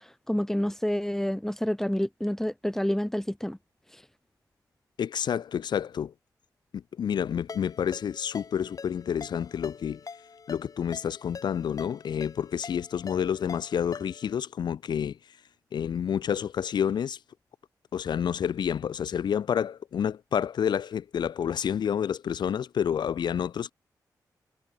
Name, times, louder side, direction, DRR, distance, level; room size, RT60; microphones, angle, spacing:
voice 1, 0.3-3.6, equal, 5° left, 3.4 m, -28 dB
voice 2, 5.0-6.1 7.0-10.0 10.5-15.4 15.7-17.2 17.9-23.7, left 8 dB, 85° left, 1.6 m, -29 dB
Ringtone, 7.5-14.4, left 5 dB, 55° left, 5.2 m, -45 dB
cardioid pair, 80°, 7 cm